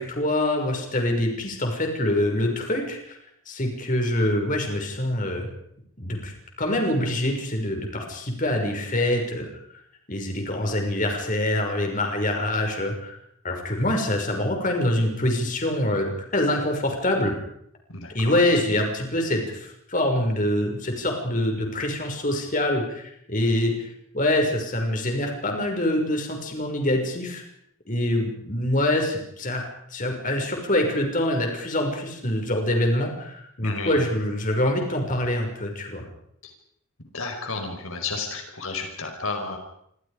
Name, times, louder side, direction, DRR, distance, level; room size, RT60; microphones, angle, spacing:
voice 1, 0.0-3.2 3.5-5.5 6.0-6.3 6.6-9.5 10.1-13.2 13.4-17.3 18.1-23.0 23.3-23.7 24.1-27.4 27.9-29.6 29.9-36.0, left 1 dB, 40° left, 3 dB, 5.9 m, -25 dB
voice 2, 17.9-18.4 33.6-34.0 37.1-39.6, left 3 dB, 75° left, 4 dB, 5.1 m, -32 dB
28.0 x 25.5 x 5.1 m, 0.71 s
head